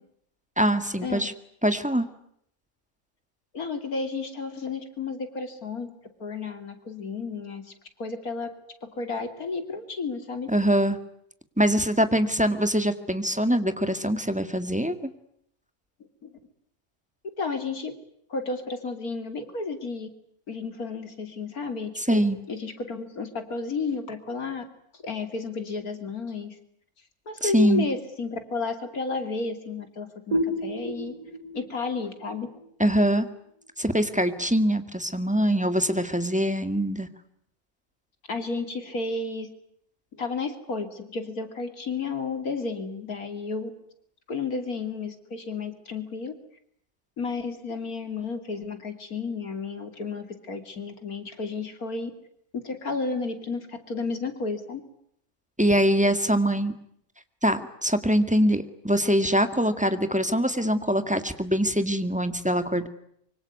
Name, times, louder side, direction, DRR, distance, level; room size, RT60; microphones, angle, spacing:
voice 1, 0.6-1.3 1.6-2.1 10.5-11.0 11.6-15.0 22.0-22.4 27.4-27.9 32.8-33.3 33.8-37.1 55.6-56.7 57.4-62.9, equal, 5° right, 9 dB, 1.8 m, -23 dB
voice 2, 3.5-5.9 6.2-7.7 8.0-8.5 8.8-10.5 16.2-16.3 17.4-17.9 18.3-20.1 20.5-22.2 22.5-24.6 25.0-26.6 27.3-31.1 31.5-32.5 38.3-39.5 40.2-43.7 44.3-46.3 47.2-52.1 52.5-54.8, left 4 dB, 80° left, 8 dB, 3.3 m, -32 dB
sound 1, 30.3-33.7, equal, 80° right, 3.4 m, -32 dB
25.0 x 24.5 x 9.5 m, 0.70 s
omnidirectional pair, 1.5 m